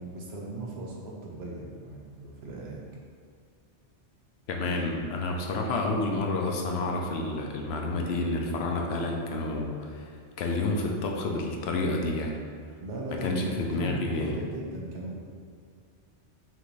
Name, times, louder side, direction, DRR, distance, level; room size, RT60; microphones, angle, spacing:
voice 1, 0.0-2.8 12.8-15.2, right 1 dB, 70° right, -2 dB, 1.0 m, -38 dB
voice 2, 4.5-10.1 10.4-12.4 13.2-14.4, left 2 dB, 70° left, 1 dB, 0.8 m, -29 dB
5.7 x 2.6 x 3.1 m, 2.1 s
omnidirectional pair, 1.2 m